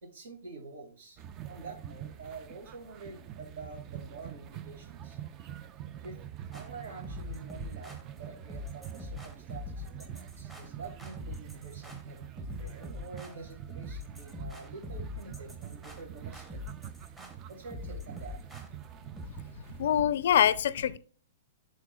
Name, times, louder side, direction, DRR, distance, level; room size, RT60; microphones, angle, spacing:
voice 1, 0.0-1.2 1.5-5.2 6.0-6.2 6.5-16.6 17.5-18.4, right 3 dB, 75° right, 2.1 m, -47 dB
sound 1, 1.2-20.0, right 10 dB, 25° right, 0.4 m, -45 dB
sound 2, 6.5-19.3, left 3 dB, 10° right, 1.0 m, -44 dB
voice 2, 19.8-21.0, left 10 dB, 65° left, 0.4 m, -24 dB
11.0 x 3.8 x 2.3 m
hypercardioid pair, 150°, 0 cm